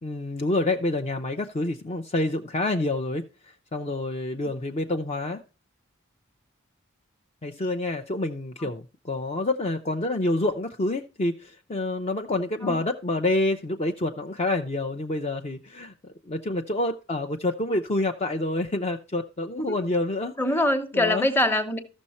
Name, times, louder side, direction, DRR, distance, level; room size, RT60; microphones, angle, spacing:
voice 1, 0.0-5.4 7.4-20.3 20.9-21.3, left 2 dB, 30° left, 0.6 m, -28 dB
voice 2, 20.4-21.8, left 1 dB, 10° left, 1.0 m, -24 dB
13.5 x 6.3 x 4.2 m
head